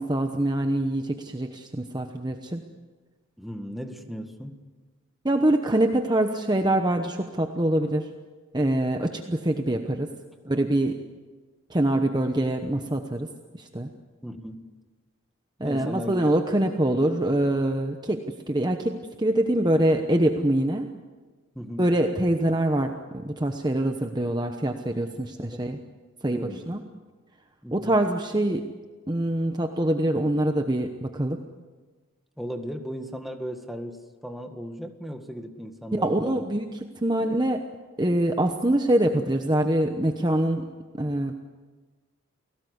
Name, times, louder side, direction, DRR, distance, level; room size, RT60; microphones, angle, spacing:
voice 1, 0.0-2.6 5.2-8.1 8.5-10.1 10.4-10.9 11.7-13.3 13.5-13.9 15.6-20.9 21.8-25.8 26.2-26.8 27.7-28.7 29.1-31.4 35.9-36.7 37.0-37.6 38.0-40.6 40.9-41.3, right 1 dB, 20° right, 5 dB, 1.0 m, -24 dB
voice 2, 3.4-4.6 14.2-14.6 15.6-16.2 21.5-21.9 25.5-25.6 26.3-26.7 27.6-27.9 32.4-36.4 37.2-37.4, equal, ahead, 4 dB, 1.7 m, -36 dB
29.5 x 18.5 x 8.1 m, 1.4 s
head